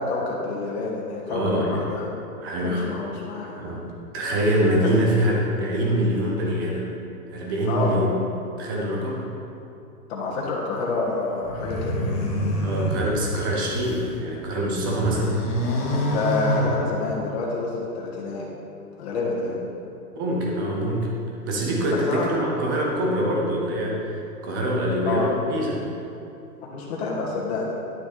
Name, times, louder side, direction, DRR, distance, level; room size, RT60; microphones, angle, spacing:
voice 1, 0.0-2.1 2.6-3.7 7.6-7.9 10.1-12.0 16.1-18.5 19.0-19.6 21.9-22.3 25.0-25.3 26.6-27.7, left 3 dB, 40° left, -4 dB, 1.6 m, -28 dB
voice 2, 1.3-1.8 2.4-2.9 3.6-3.9 4.1-6.9 7.3-8.1 8.6-9.3 12.6-15.4 20.1-21.1 21.4-25.8, right 1 dB, 15° right, -2 dB, 0.5 m, -24 dB
sound 1, 11.4-14.1 14.5-17.4, equal, 20° left, 1.0 m, -27 dB
10.5 x 5.9 x 4.0 m, 2.8 s
hypercardioid pair, 145°, 49 cm